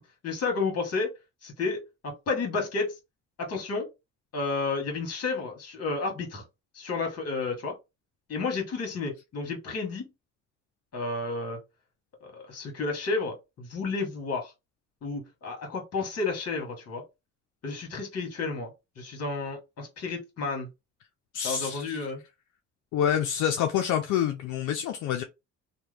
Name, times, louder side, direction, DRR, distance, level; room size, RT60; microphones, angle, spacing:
voice 1, 0.2-1.1 1.4-2.9 3.4-3.9 4.3-6.4 6.7-7.7 8.3-10.1 10.9-11.6 12.2-14.5 15.0-17.0 17.6-20.7 21.4-22.2, left 3 dB, 55° left, 1.5 m, -31 dB
voice 2, 21.3-22.1 22.9-25.2, left 9 dB, 75° left, 0.5 m, -27 dB
2.9 x 2.2 x 3.3 m
cardioid pair, 90°, 30 cm